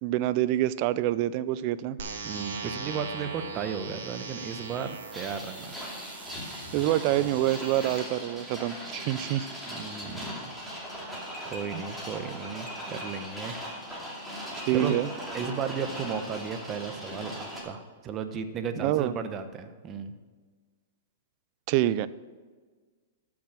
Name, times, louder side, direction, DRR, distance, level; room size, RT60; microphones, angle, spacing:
voice 1, 0.0-2.0 6.7-9.5 11.7-11.8 14.7-15.1 18.8-19.1 21.7-22.1, right 14 dB, 45° right, 17 dB, 0.4 m, -26 dB
sound 1, 2.0-8.0, right 5 dB, 75° right, 1.7 m, -40 dB
voice 2, 2.2-5.7 9.7-10.3 11.0-13.7 14.2-14.3 14.7-14.9 15.3-20.1, right 6 dB, 25° right, 9 dB, 0.9 m, -35 dB
sound 2, 5.1-17.6, equal, ahead, 2.6 m, -39 dB
13.0 x 6.1 x 6.2 m, 1.5 s
hypercardioid pair, 140°, 0 cm